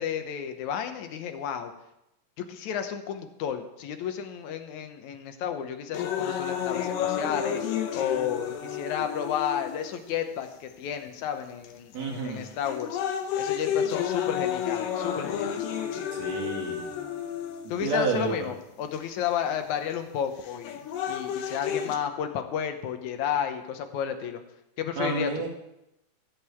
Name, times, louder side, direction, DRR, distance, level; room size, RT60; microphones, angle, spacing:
voice 1, 0.0-1.7 2.4-7.6 7.9-13.0 13.4-15.6 17.7-20.8 21.1-24.4 24.8-25.3, left 8 dB, 70° left, 7 dB, 2.2 m, -32 dB
sound 1, 5.9-10.0 10.7-10.8 11.6-12.0 12.4-18.0 18.9-19.0 20.4-22.0, left 8 dB, 85° left, 2.7 m, -31 dB
voice 2, 11.9-12.4 16.1-16.8 17.8-18.3 25.0-25.5, right 4 dB, 55° right, -1 dB, 3.5 m, -29 dB
16.0 x 5.4 x 8.3 m, 0.87 s
omnidirectional pair, 3.8 m